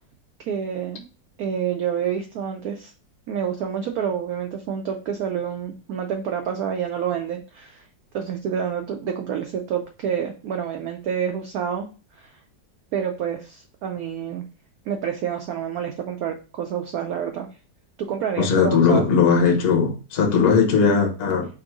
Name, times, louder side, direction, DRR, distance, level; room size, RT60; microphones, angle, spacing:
voice 1, 0.4-1.1 1.4-2.9 3.3-7.8 8.1-11.9 12.2-12.4 12.9-14.4 14.9-17.5 18.0-19.0, right 8 dB, 70° right, 0.9 m, -28 dB
voice 2, 18.4-21.5, left 5 dB, 45° left, 0.9 m, -18 dB
3.5 x 2.5 x 4.5 m
omnidirectional pair, 1.9 m